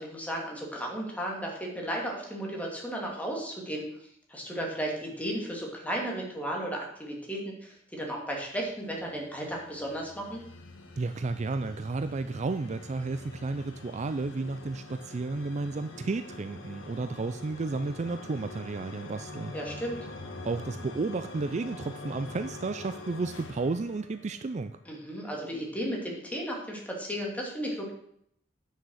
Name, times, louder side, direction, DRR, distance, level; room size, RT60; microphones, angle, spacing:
voice 1, 0.0-3.9 4.3-10.4 19.5-20.0 24.9-27.9, equal, 10° left, -1 dB, 2.6 m, -34 dB
sound 1, 8.6-24.8, left 2 dB, 85° left, 1.4 m, -45 dB
voice 2, 11.0-19.5 20.4-24.8, right 3 dB, 35° right, 10 dB, 0.4 m, -32 dB
9.7 x 6.5 x 6.3 m, 0.71 s
head